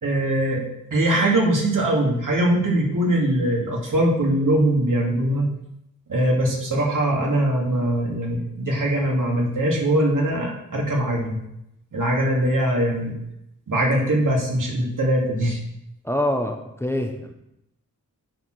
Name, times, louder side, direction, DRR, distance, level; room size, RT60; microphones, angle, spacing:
voice 1, 0.0-5.5 6.1-11.4 11.9-13.2 13.7-15.6, right 1 dB, 65° right, -2 dB, 2.5 m, -22 dB
voice 2, 16.0-17.3, left 1 dB, 5° left, 3 dB, 0.9 m, -25 dB
9.1 x 4.8 x 6.2 m, 0.83 s
wide cardioid pair, 100°, 34 cm